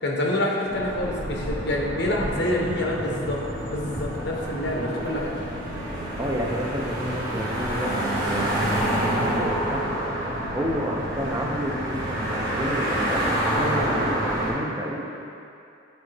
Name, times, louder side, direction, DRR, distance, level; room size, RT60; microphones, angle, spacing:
voice 1, 0.0-3.4 3.7-5.3, left 1 dB, 65° left, -1 dB, 0.9 m, -26 dB
sound 1, 0.7-14.5, right 1 dB, 50° right, 1.5 m, -28 dB
voice 2, 6.2-7.9 8.3-8.6 9.0-9.8 10.5-15.1, equal, 15° right, -1 dB, 0.6 m, -30 dB
8.4 x 4.0 x 3.3 m, 2.7 s
head